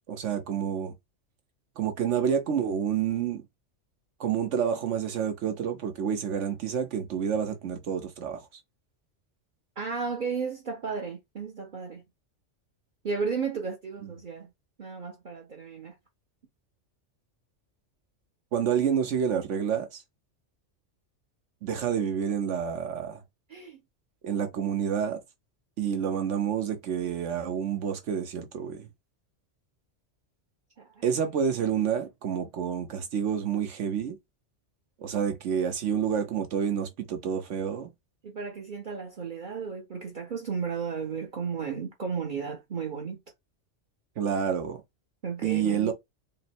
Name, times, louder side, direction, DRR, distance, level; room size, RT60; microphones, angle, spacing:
voice 1, 0.1-0.9 1.8-3.4 4.2-8.4 18.5-20.0 21.6-23.2 24.2-25.2 25.8-28.9 31.0-34.2 35.0-37.9 44.2-44.8 45.4-45.9, right 8 dB, 75° right, 1.2 m, -28 dB
voice 2, 9.8-12.0 13.0-14.5 14.8-15.9 23.5-23.8 30.8-31.0 38.2-43.2 45.2-45.9, right 5 dB, 45° right, 0.9 m, -34 dB
3.8 x 2.1 x 4.2 m
omnidirectional pair, 1.2 m